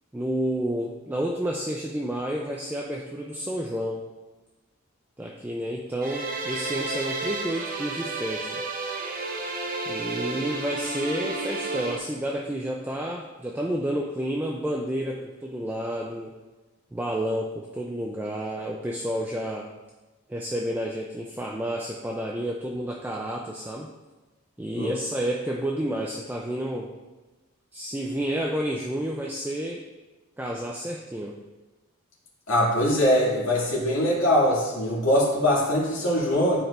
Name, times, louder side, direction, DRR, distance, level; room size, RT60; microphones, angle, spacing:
voice 1, 0.1-4.0 5.2-8.6 9.9-16.4 16.9-19.7 20.3-23.9 24.6-26.9 27.7-29.9 30.4-31.4, equal, 10° right, -1 dB, 0.3 m, -30 dB
sound 1, 6.0-12.0, right 3 dB, 40° right, 0.7 m, -31 dB
voice 2, 32.5-36.6, equal, 75° left, -5 dB, 2.2 m, -22 dB
12.0 x 4.5 x 2.4 m, 1.2 s
head